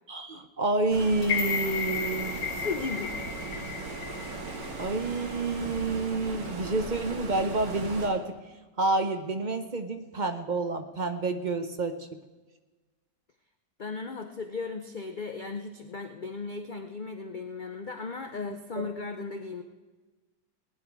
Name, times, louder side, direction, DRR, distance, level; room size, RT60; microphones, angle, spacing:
voice 1, 0.1-2.4 4.8-8.4 8.8-12.1 18.8-18.9, right 3 dB, 40° right, 7 dB, 0.7 m, -29 dB
Stream, 0.9-8.1, right 3 dB, 90° right, 2.6 m, -38 dB
sound 1, 1.2-5.4 5.7-5.8, left 6 dB, 70° left, 1.6 m, -34 dB
voice 2, 2.5-3.1 13.8-19.6, left 4 dB, 50° left, 6 dB, 0.5 m, -36 dB
18.0 x 10.5 x 4.7 m, 1.3 s
omnidirectional pair, 1.9 m